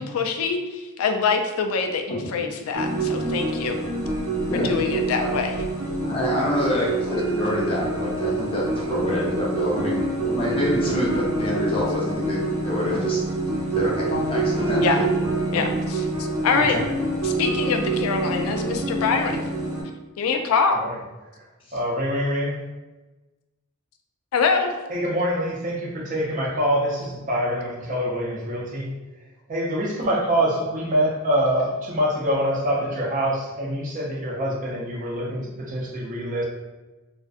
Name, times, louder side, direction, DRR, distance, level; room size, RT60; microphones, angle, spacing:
voice 1, 0.0-3.7 4.5-5.5 14.8-15.0 15.5-15.7 16.4-16.8 17.2-19.4 20.2-20.8 24.3-24.8, left 5 dB, 80° left, 5 dB, 0.4 m, -24 dB
sound 1, 2.7-19.8, right 2 dB, 80° right, 0.6 m, -26 dB
voice 2, 6.0-13.2 13.7-14.9 15.5-15.6 16.5-16.8 21.7-21.8, left 1 dB, 25° left, -4 dB, 0.6 m, -26 dB
voice 3, 21.7-22.5 24.9-28.9 29.5-36.4, equal, 40° right, -3 dB, 0.5 m, -25 dB
2.4 x 2.4 x 2.3 m, 1.1 s
head